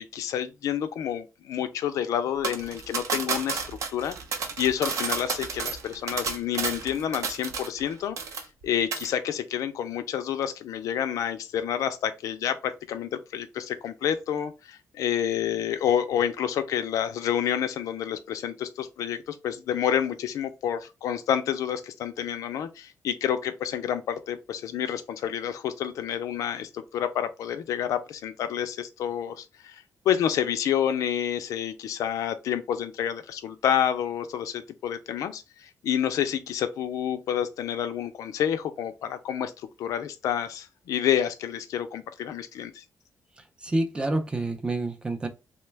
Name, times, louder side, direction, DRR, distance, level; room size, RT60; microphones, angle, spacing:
voice 1, 0.0-39.5 39.8-42.8, left 9 dB, 90° left, 0.4 m, -29 dB
sound 1, 2.4-7.9 8.2-8.6 8.9-9.1, right 5 dB, 70° right, 0.6 m, -31 dB
voice 2, 43.6-45.3, right 2 dB, 15° right, 0.5 m, -28 dB
3.1 x 2.2 x 3.3 m
cardioid pair, 140°, 6 cm